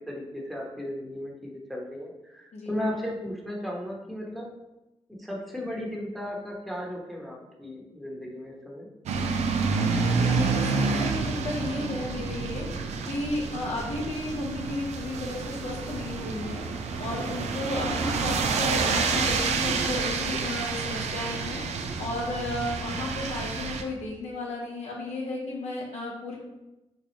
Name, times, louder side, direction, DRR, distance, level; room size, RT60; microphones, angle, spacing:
voice 1, 0.1-4.5 5.2-8.9, left 1 dB, ahead, -3 dB, 0.9 m, -35 dB
sound 1, 9.1-23.8, right 4 dB, 80° right, 0.4 m, -29 dB
voice 2, 10.0-12.7 13.1-16.6 17.0-21.6 22.0-26.4, left 2 dB, 80° left, -2 dB, 0.9 m, -33 dB
3.2 x 2.3 x 4.0 m, 0.99 s
supercardioid pair, 45°, 11 cm